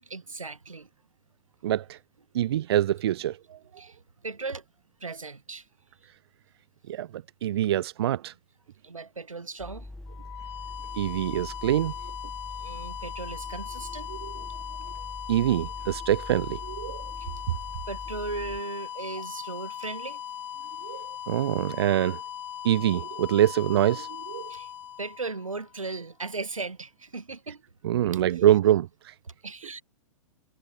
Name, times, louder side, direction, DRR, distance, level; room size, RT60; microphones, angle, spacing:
voice 1, 0.0-0.9 3.8-4.0 4.2-4.6 5.0-5.7 7.5-7.7 8.8-9.9 12.6-14.2 17.2-17.3 17.9-20.2 20.6-20.7 24.5-24.7 25.0-27.6 28.1-28.2 29.4-29.8, right 3 dB, 80° right, 1.6 m, -37 dB
voice 2, 1.6-2.0 2.3-3.6 6.9-8.3 10.9-11.9 14.1-14.3 15.3-17.1 17.5-17.6 20.8-22.2 22.6-24.5 27.8-29.1, right 12 dB, 50° right, 0.8 m, -25 dB
sound 1, 9.6-18.6, left 1 dB, 5° left, 1.7 m, -43 dB
sound 2, 10.1-25.9, left 10 dB, 55° left, 0.6 m, -39 dB
figure-of-eight pair, 110°, 17 cm